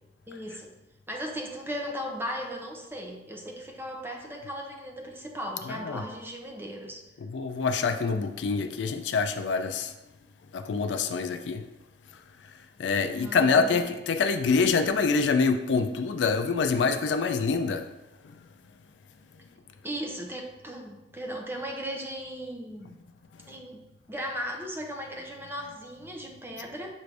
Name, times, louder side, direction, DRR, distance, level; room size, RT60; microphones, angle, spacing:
voice 1, 0.3-0.7 1.1-7.0 13.2-13.8 19.8-22.9 23.5-26.9, equal, 15° right, 1 dB, 0.5 m, -37 dB
voice 2, 5.7-6.0 7.2-9.9 10.5-11.7 12.8-17.9, left 4 dB, 70° left, 8 dB, 0.3 m, -26 dB
6.1 x 2.5 x 3.3 m, 1.0 s
head